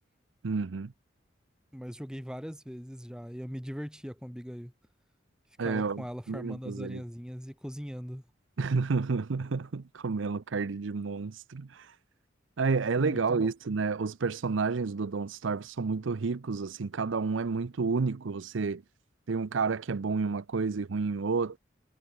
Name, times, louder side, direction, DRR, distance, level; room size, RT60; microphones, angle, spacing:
voice 1, 0.4-0.9 5.6-7.0 8.6-11.9 12.6-18.8 19.3-21.6, right 4 dB, 85° right, 0.6 m, -30 dB
voice 2, 1.7-4.7 5.6-8.2 13.0-13.5, equal, 5° right, 3.7 m, -40 dB
head